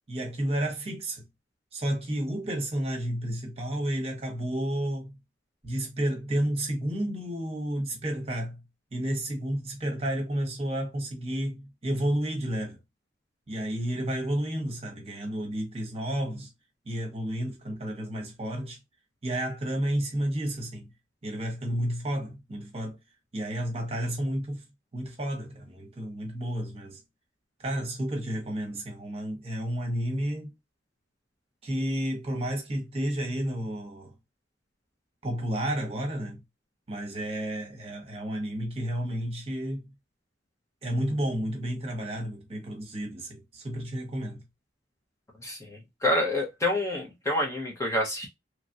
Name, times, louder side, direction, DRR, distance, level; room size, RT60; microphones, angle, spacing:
voice 1, 0.1-1.2 1.7-5.2 5.6-8.6 8.9-12.8 13.5-16.5 16.9-18.8 19.2-20.9 21.2-23.0 23.3-24.6 24.9-27.0 27.6-30.5 31.6-34.1 35.2-36.4 36.9-39.9 40.8-44.4, right 1 dB, 30° right, 1.0 m, -31 dB
voice 2, 45.4-48.3, left 1 dB, 15° left, 0.6 m, -28 dB
3.0 x 2.4 x 2.6 m
head